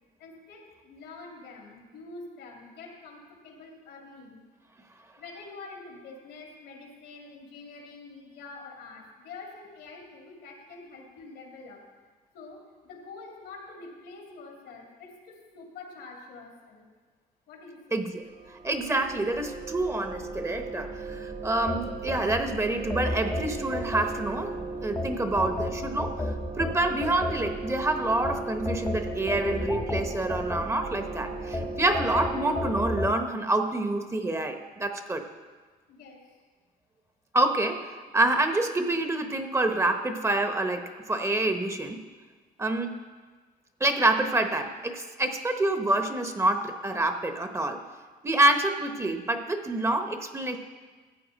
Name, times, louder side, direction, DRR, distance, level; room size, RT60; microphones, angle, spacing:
voice 1, 0.2-4.4 5.2-11.8 12.3-16.9 17.5-18.0 35.9-36.3, left 3 dB, 85° left, 0 dB, 2.5 m, -46 dB
voice 2, 17.9-18.2 18.6-35.2 37.3-42.0 42.6-43.0 43.8-47.8 48.2-50.6, right 2 dB, 15° right, 6 dB, 0.8 m, -27 dB
sound 1, 18.2-33.0, right 3 dB, 50° right, 1.3 m, -37 dB
sound 2, 21.7-24.5 25.0-27.7 28.2-31.0 31.5-33.2, left 3 dB, 15° left, 0.7 m, -33 dB
14.0 x 8.5 x 4.0 m, 1.4 s
cardioid pair, 110°, 17 cm